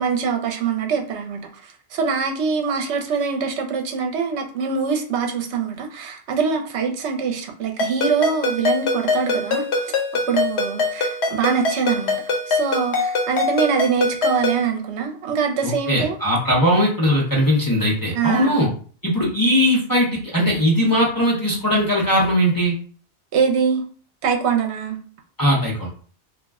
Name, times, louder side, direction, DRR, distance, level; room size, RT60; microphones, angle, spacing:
voice 1, 0.0-9.9 10.3-12.2 12.5-16.2 18.1-18.7 23.3-23.8 24.2-25.0, right 6 dB, 80° right, 3 dB, 0.9 m, -23 dB
Ringtone, 7.8-14.7, left 3 dB, 75° left, 0.9 m, -23 dB
voice 2, 15.6-18.7 19.0-22.8 25.4-25.9, equal, 25° left, -5 dB, 0.6 m, -19 dB
2.3 x 2.1 x 3.4 m, 0.43 s
omnidirectional pair, 1.1 m